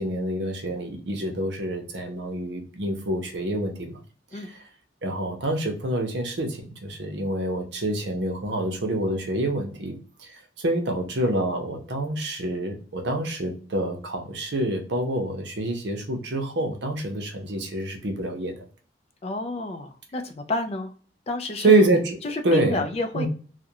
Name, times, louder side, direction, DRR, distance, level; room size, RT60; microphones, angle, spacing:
voice 1, 0.0-4.0 4.3-4.6 5.0-10.3 10.6-18.5 21.6-22.2 22.4-22.9 23.1-23.3, right 1 dB, 75° right, 3 dB, 0.7 m, -26 dB
voice 2, 19.2-20.9 21.3-21.9 22.2-23.3, left 2 dB, 35° left, 7 dB, 0.3 m, -30 dB
2.4 x 2.1 x 2.7 m, 0.41 s
head